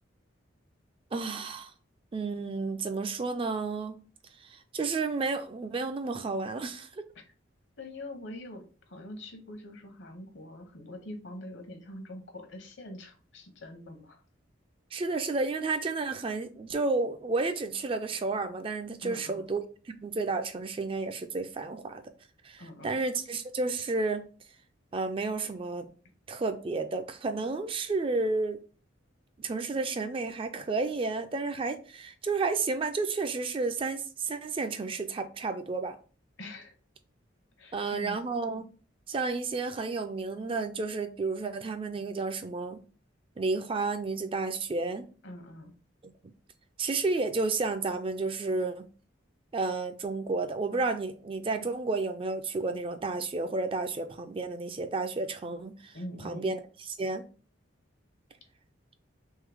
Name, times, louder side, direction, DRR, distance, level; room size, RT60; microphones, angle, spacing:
voice 1, 1.1-1.7 2.1-4.0 4.4-7.0 14.9-22.0 22.4-24.2 24.9-25.9 26.3-28.6 29.4-36.0 37.7-38.7 39.1-42.8 43.4-45.1 46.8-48.9 49.5-56.0 56.2-57.2, right 3 dB, 25° right, 0.3 m, -31 dB
voice 2, 7.8-14.2 19.0-19.4 22.6-23.0 36.4-36.7 37.6-38.2 45.2-45.7 55.9-56.5, left 1 dB, 65° left, 0.9 m, -44 dB
3.7 x 3.1 x 3.4 m
head